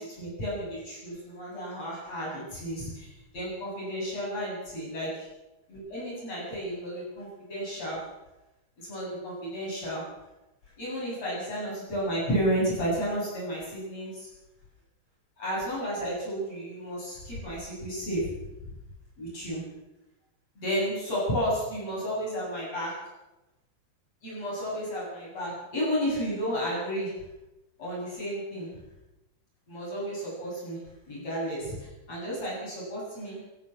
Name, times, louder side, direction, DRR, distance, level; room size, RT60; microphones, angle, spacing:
voice 1, 0.0-5.1 5.7-8.0 8.8-10.0 10.8-14.3 15.4-18.3 19.2-19.6 20.6-22.9 24.2-27.1 27.8-28.7 29.7-30.8 31.1-33.4, equal, 40° left, -5 dB, 9.1 m, -32 dB
23.5 x 15.5 x 7.4 m, 1.0 s
omnidirectional pair, 4.5 m